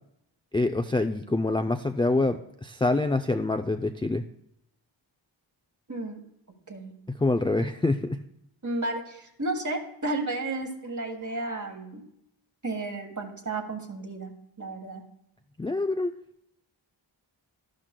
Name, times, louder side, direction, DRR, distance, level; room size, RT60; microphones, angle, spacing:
voice 1, 0.5-4.2 7.1-8.2 15.6-16.1, left 2 dB, 10° left, 6 dB, 0.3 m, -26 dB
voice 2, 5.9-6.2 6.7-6.9 8.6-12.0 12.6-14.3 14.6-15.0, right 2 dB, 35° right, 3 dB, 1.7 m, -32 dB
12.0 x 11.5 x 2.2 m, 0.77 s
wide cardioid pair, 60°, 49 cm